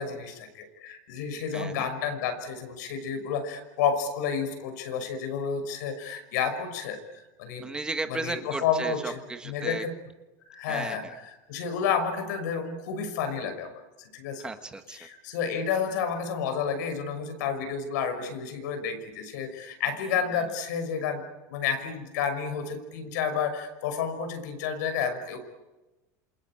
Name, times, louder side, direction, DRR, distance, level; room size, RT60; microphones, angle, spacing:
voice 1, 0.0-7.6 8.1-9.2 9.4-9.9 10.5-11.0 11.5-13.7 14.0-14.5 15.0-21.2 21.5-25.4, left 6 dB, 80° left, 7 dB, 5.9 m, -30 dB
voice 2, 1.5-1.9 7.6-9.9 10.7-11.2 14.4-15.0, right 3 dB, 10° right, 8 dB, 1.3 m, -35 dB
28.0 x 24.0 x 9.0 m, 1.1 s
supercardioid pair, 165°, 9 cm